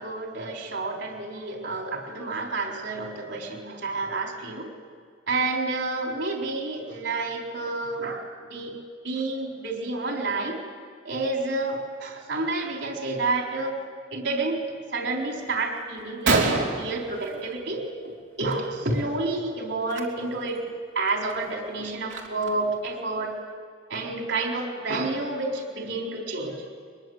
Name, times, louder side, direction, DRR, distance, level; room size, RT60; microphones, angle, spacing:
voice 1, 0.0-4.7 5.3-8.7 9.0-10.6 11.0-13.7 14.1-14.7 14.9-16.4 16.8-20.6 20.9-23.4 23.9-26.6, right 3 dB, 65° right, 1 dB, 4.0 m, -29 dB
Gunshot gunfire, 15.6-15.7 16.0-16.1 16.3-17.9 18.2-18.5 18.8-19.0 19.8-20.0 20.5-20.6 21.1-22.7, right 3 dB, 80° right, 3.5 m, -27 dB
22.5 x 22.0 x 8.0 m, 2.1 s
head